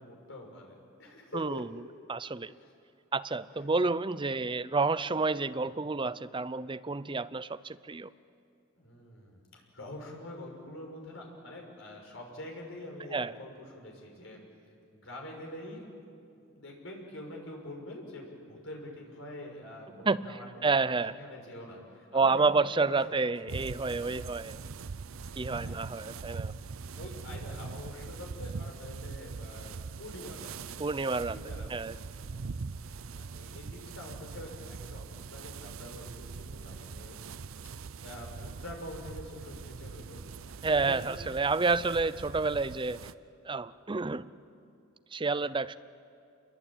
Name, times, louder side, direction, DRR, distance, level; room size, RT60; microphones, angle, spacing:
voice 1, 0.0-1.6 2.6-2.7 8.8-14.4 14.9-15.8 16.4-20.7 21.2-23.0 23.4-24.3 25.2-25.8 26.9-30.7 31.1-31.9 32.8-37.2 38.0-40.2 40.5-41.0, left 1 dB, 65° left, 0 dB, 6.3 m, -46 dB
voice 2, 1.3-1.7 2.1-2.5 3.1-8.1 13.1-13.3 20.1-20.4 20.6-21.2 22.1-24.6 25.4-26.5 30.8-31.4 31.7-31.9 40.6-43.0 43.5-44.3 45.1-45.8, right 4 dB, 25° right, 14 dB, 0.6 m, -29 dB
sound 1, 23.5-43.1, right 4 dB, 80° right, 0.6 m, -42 dB
28.0 x 23.0 x 8.9 m, 2.5 s
head